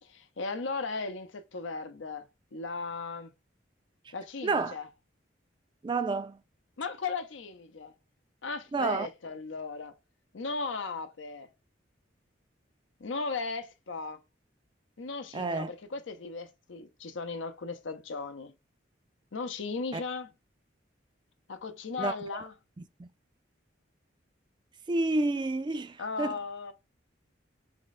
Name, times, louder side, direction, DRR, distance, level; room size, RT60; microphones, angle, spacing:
voice 1, 0.0-3.3 4.1-4.9 6.8-7.9 8.4-9.9 10.3-11.5 13.0-14.2 15.0-18.5 19.3-20.3 21.5-22.5 26.0-26.7, left 4 dB, 85° left, 0.7 m, -37 dB
voice 2, 4.4-4.7 5.8-6.4 8.7-9.1 15.3-15.7 19.9-20.0 22.0-22.1 23.0-23.1 24.9-26.4, right 3 dB, 25° right, 0.3 m, -29 dB
3.6 x 3.2 x 4.1 m
head